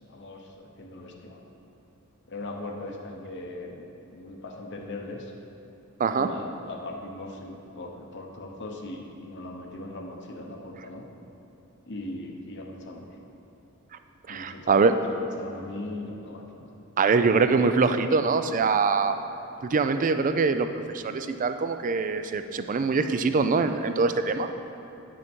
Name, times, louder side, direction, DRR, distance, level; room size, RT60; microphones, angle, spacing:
voice 1, 0.0-1.4 2.3-5.3 6.1-11.1 11.9-13.1 14.3-16.4, left 2 dB, 55° left, 1 dB, 0.9 m, -39 dB
voice 2, 14.3-14.9 17.0-19.1 19.6-20.7 20.9-24.5, right 4 dB, 35° right, 9 dB, 0.4 m, -23 dB
9.7 x 6.3 x 4.5 m, 2.9 s
head